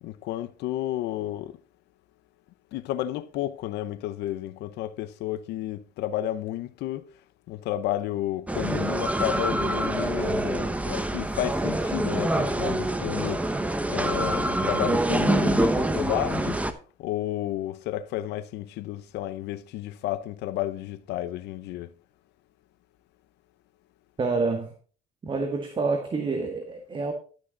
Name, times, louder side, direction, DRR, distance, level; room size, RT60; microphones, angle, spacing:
voice 1, 0.0-1.6 2.7-7.0 7.5-13.5 13.9-16.6 17.0-21.9, left 13 dB, 85° left, 0.8 m, -31 dB
sound 1, 8.5-16.7, right 1 dB, 10° right, 0.8 m, -26 dB
voice 2, 24.2-24.7 25.2-27.1, right 3 dB, 30° right, 1.4 m, -27 dB
12.0 x 6.2 x 3.9 m
cardioid pair, 110°, 17 cm